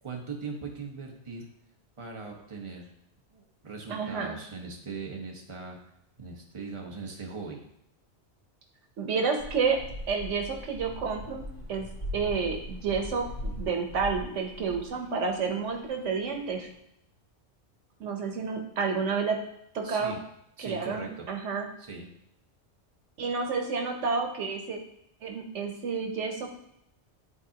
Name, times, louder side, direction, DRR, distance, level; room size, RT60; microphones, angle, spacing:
voice 1, 0.0-1.5 2.0-2.9 3.3-5.8 6.2-7.6 19.8-20.2 20.6-21.3 21.8-22.1, right 4 dB, 30° right, 0 dB, 1.1 m, -40 dB
voice 2, 3.9-4.3 9.0-9.8 10.1-11.9 12.1-16.7 18.0-19.4 19.7-20.2 20.6-21.7 23.2-24.8 25.2-26.5, right 5 dB, 85° right, 3 dB, 1.3 m, -30 dB
sound 1, 9.4-16.8, left 1 dB, 85° left, 1.8 m, -41 dB
11.0 x 3.9 x 2.9 m, 0.76 s
omnidirectional pair, 1.2 m